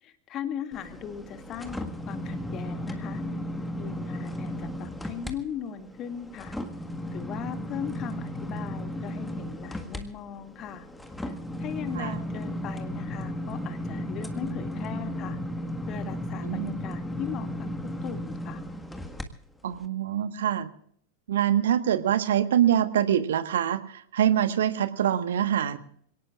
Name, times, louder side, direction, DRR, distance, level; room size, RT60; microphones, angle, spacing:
voice 1, 0.0-3.2 3.8-6.6 7.1-10.9 11.2-11.3 11.6-15.4 15.9-17.7 18.0-18.6, left 8 dB, 30° left, 7 dB, 2.2 m, -38 dB
sound 1, 0.7-5.3 5.7-19.2 19.7-19.9, equal, 5° left, 1.7 m, -35 dB
voice 2, 19.6-20.7 21.3-25.8, right 10 dB, 60° right, 11 dB, 1.4 m, -24 dB
27.5 x 18.0 x 2.5 m, 0.63 s
figure-of-eight pair, 90°, 0 cm